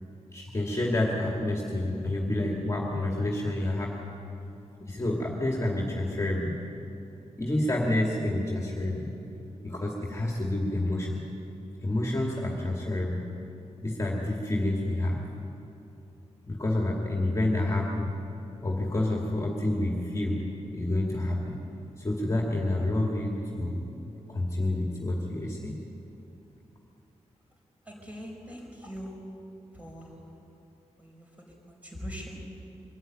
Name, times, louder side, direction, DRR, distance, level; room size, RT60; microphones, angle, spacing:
voice 1, 0.3-4.0 4.8-6.6 7.4-9.1 9.6-11.2 11.8-13.3 13.8-15.2 16.5-18.2 18.6-20.4 20.7-21.6 22.0-23.8 24.3-25.8, left 1 dB, 25° left, -2 dB, 2.3 m, -28 dB
voice 2, 27.8-29.2 29.7-30.3 31.0-32.4, equal, 10° right, -1 dB, 5.1 m, -42 dB
23.5 x 13.5 x 9.2 m, 2.9 s
wide cardioid pair, 160°, 12 cm